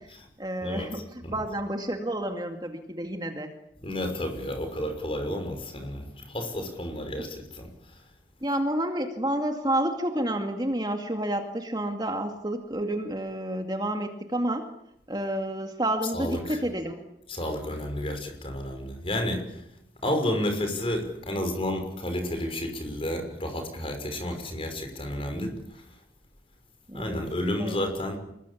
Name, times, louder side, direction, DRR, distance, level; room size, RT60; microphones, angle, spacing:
voice 1, 0.4-3.5 8.4-14.7 15.1-17.0 26.9-27.2 27.5-27.8, right 1 dB, 25° right, 5 dB, 2.3 m, -30 dB
voice 2, 3.8-6.0 6.3-7.7 16.1-16.6 17.3-19.4 20.0-25.5 26.9-28.2, left 1 dB, 30° left, 5 dB, 6.0 m, -31 dB
26.5 x 21.5 x 8.6 m, 0.78 s
head